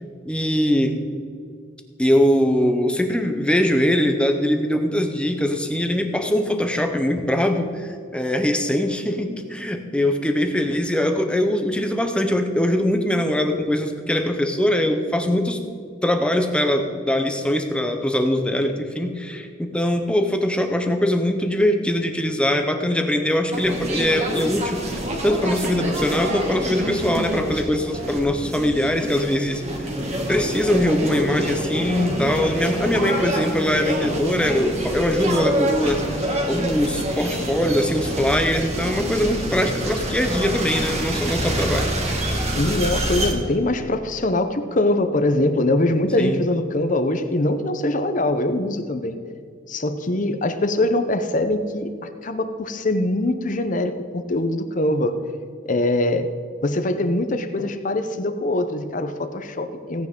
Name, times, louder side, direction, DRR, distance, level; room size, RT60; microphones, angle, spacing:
voice 1, 0.0-1.0 2.0-15.6 16.0-29.6 30.3-41.9 46.2-46.4, left 1 dB, 5° left, 5 dB, 0.9 m, -22 dB
sound 1, 23.5-43.3, right 1 dB, 35° right, 1.9 m, -26 dB
voice 2, 42.6-49.2 49.7-51.9 52.2-55.1 55.6-56.3 56.6-60.1, left 1 dB, 40° left, 9 dB, 0.8 m, -22 dB
17.0 x 9.5 x 3.8 m, 2.3 s
head